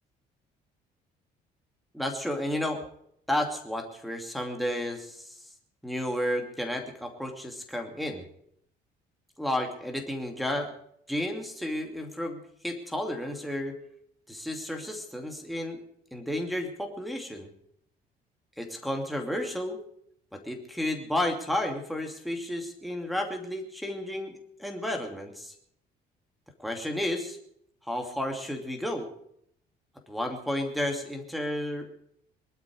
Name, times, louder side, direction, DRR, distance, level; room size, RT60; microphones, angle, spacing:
voice 1, 1.9-2.8 3.3-5.3 5.8-8.2 9.4-10.7 11.1-13.8 14.3-15.8 16.1-17.5 18.6-19.8 20.3-25.5 26.6-27.4 27.9-29.1 30.1-31.9, left 1 dB, ahead, 2 dB, 2.6 m, -32 dB
22.0 x 12.0 x 4.9 m, 0.70 s
cardioid pair, 110°, 17 cm